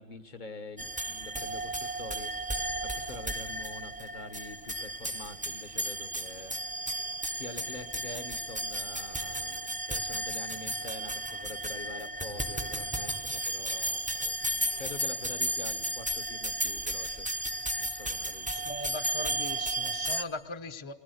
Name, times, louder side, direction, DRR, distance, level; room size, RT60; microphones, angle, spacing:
voice 1, 0.0-6.9 7.3-17.3 17.8-18.7, left 2 dB, 45° left, 8 dB, 1.2 m, -45 dB
sound 1, 0.8-20.2, right 1 dB, 10° right, 0.6 m, -34 dB
voice 2, 18.5-20.9, left 3 dB, 30° left, 10 dB, 0.9 m, -39 dB
24.5 x 18.5 x 7.9 m, 1.4 s
omnidirectional pair, 1.2 m